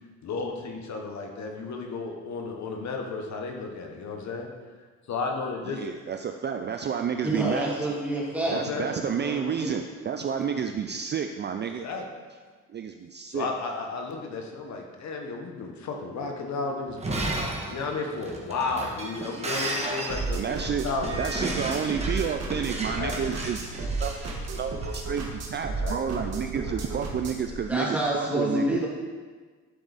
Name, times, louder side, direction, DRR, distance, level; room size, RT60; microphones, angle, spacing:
voice 1, 0.2-4.5 5.1-5.8 8.5-8.9 11.6-12.0 13.3-17.2 17.7-20.4 20.8-21.1 23.0-23.3 25.8-26.0, left 4 dB, 65° left, 2 dB, 1.2 m, -33 dB
voice 2, 5.7-8.0 8.5-11.9 12.7-13.5 20.3-20.9 21.2-24.3 24.5-28.9, right 7 dB, 35° right, 6 dB, 0.4 m, -30 dB
voice 3, 7.2-9.8 27.6-28.9, right 1 dB, 5° right, -6 dB, 2.7 m, -28 dB
Shatter, 16.9-24.9, right 1 dB, 20° right, 1.5 m, -34 dB
sound 1, 20.1-27.5, right 3 dB, 55° right, 1.6 m, -33 dB
11.5 x 4.6 x 4.1 m, 1.5 s
cardioid pair, 90°, 30 cm